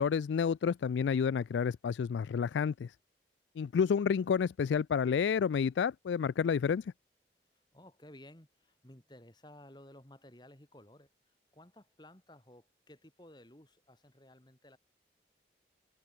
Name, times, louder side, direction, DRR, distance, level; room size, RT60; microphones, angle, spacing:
voice 1, 0.0-2.9 3.6-6.9, left 6 dB, 90° left, 0.3 m, -30 dB
voice 2, 7.5-14.8, left 1 dB, 25° left, 3.1 m, -56 dB
head